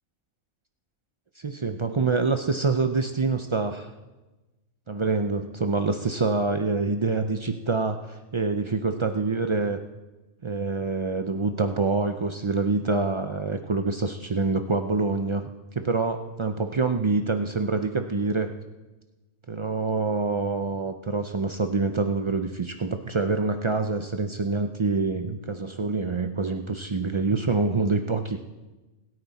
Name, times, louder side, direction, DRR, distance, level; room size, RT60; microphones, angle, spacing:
voice 1, 1.4-3.9 4.9-9.8 10.4-15.5 15.8-18.5 19.5-28.4, right 3 dB, 50° right, 6 dB, 0.3 m, -26 dB
26.5 x 9.4 x 4.1 m, 1.1 s
omnidirectional pair, 1.5 m